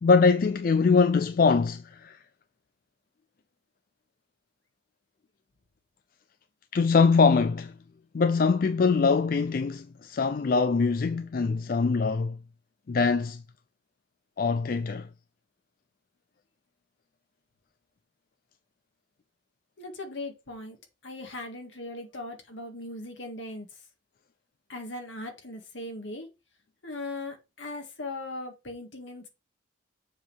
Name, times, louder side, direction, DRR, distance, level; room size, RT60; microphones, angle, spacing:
voice 1, 0.0-2.2 6.7-7.7 8.1-12.4 12.9-13.4 14.4-15.1, left 4 dB, 45° left, 0.4 m, -23 dB
voice 2, 19.8-20.8 21.0-23.7 24.7-26.3 26.8-29.3, left 2 dB, 70° left, 1.8 m, -39 dB
7.2 x 3.7 x 6.2 m
head